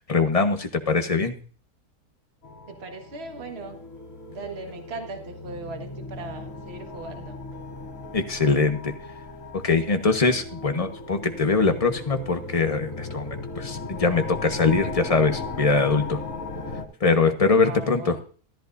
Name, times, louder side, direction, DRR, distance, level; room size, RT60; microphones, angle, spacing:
voice 1, 0.1-1.3 8.1-8.9 9.6-16.2 17.0-18.2, left 4 dB, 25° left, 6 dB, 1.2 m, -22 dB
sound 1, 2.4-16.8, left 3 dB, 60° left, 2.7 m, -37 dB
voice 2, 2.7-3.8 4.3-7.4 17.6-18.2, right 3 dB, 45° right, 4 dB, 1.9 m, -38 dB
14.0 x 13.5 x 2.6 m, 0.40 s
omnidirectional pair, 1.6 m